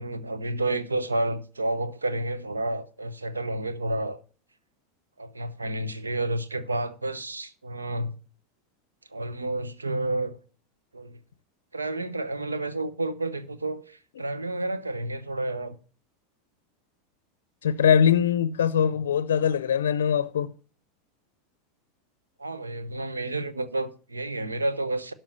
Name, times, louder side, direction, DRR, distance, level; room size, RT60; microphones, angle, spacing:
voice 1, 0.0-4.2 5.2-8.1 9.1-10.4 10.9-11.2 11.7-15.8 18.9-19.0 22.4-25.1, right 2 dB, 90° right, 0.9 m, -30 dB
voice 2, 17.6-20.5, left 8 dB, 75° left, 0.5 m, -22 dB
12.0 x 5.7 x 6.5 m
hypercardioid pair, 85°, 0 cm